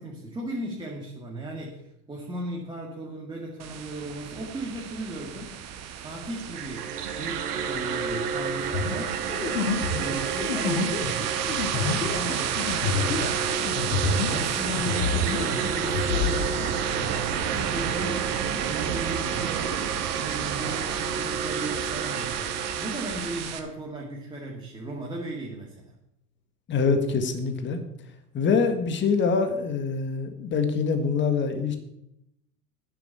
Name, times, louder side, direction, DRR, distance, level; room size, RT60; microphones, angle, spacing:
voice 1, 0.0-5.6 6.0-9.3 9.9-26.0, right 1 dB, 10° right, -2 dB, 2.2 m, -37 dB
sound 1, 3.6-23.6, right 8 dB, 30° right, 1.5 m, -32 dB
sound 2, 6.4-23.4, right 7 dB, 65° right, 1.6 m, -31 dB
sound 3, 8.7-14.5 14.7-16.4, left 5 dB, 65° left, 1.9 m, -28 dB
voice 2, 26.7-27.8 28.3-31.8, left 5 dB, 25° left, 7 dB, 1.7 m, -24 dB
9.8 x 7.7 x 8.0 m, 0.81 s
figure-of-eight pair, 85°, 49 cm